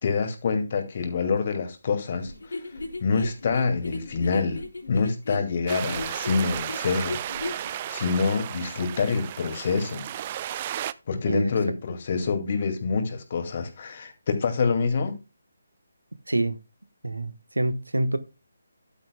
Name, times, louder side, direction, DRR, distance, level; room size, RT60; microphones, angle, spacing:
voice 1, 0.0-2.6 3.0-4.6 4.9-7.2 7.6-10.1 11.1-15.2, left 4 dB, 40° left, 2.2 m, -26 dB
sound 1, 2.2-7.7, left 2 dB, 75° left, 3.9 m, -35 dB
sound 2, 5.7-10.9, right 11 dB, 30° right, 0.4 m, -34 dB
voice 2, 16.3-16.6 17.0-18.2, right 1 dB, 85° right, 1.2 m, -26 dB
11.5 x 8.8 x 2.2 m
figure-of-eight pair, 150°, 0 cm